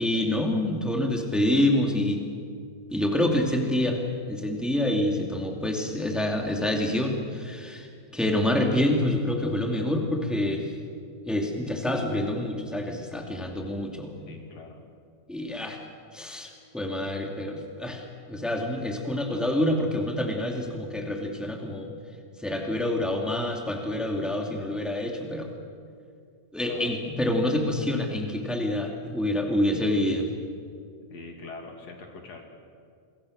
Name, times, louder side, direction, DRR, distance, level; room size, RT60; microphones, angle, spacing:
voice 1, 0.0-2.2 2.9-7.9 8.1-10.7 11.2-14.4 15.3-15.8 16.1-21.9 22.4-25.5 26.5-30.3, left 1 dB, ahead, 2 dB, 2.1 m, -27 dB
voice 2, 14.3-14.8 26.6-26.9 31.1-32.4, left 3 dB, 50° left, 3 dB, 3.6 m, -43 dB
28.0 x 23.0 x 6.7 m, 2.3 s
omnidirectional pair, 4.1 m